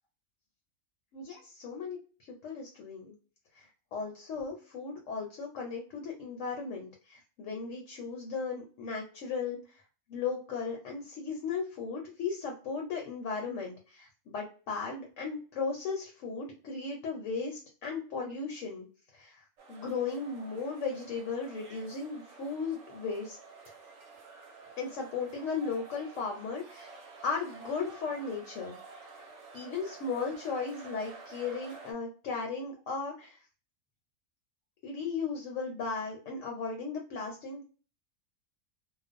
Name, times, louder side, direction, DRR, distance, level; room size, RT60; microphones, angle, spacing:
voice 1, 1.1-2.0 2.4-3.1 3.6-9.8 10.1-18.9 19.1-19.4 19.7-23.4 24.8-26.9 27.2-28.8 29.2-29.3 29.5-33.4 34.8-37.6, left 5 dB, 65° left, 1 dB, 1.0 m, -36 dB
Crowd Cheering - Ambience, 19.6-31.9, right 4 dB, 65° right, 0.9 m, -50 dB
2.4 x 2.1 x 2.5 m, 0.37 s
omnidirectional pair, 1.5 m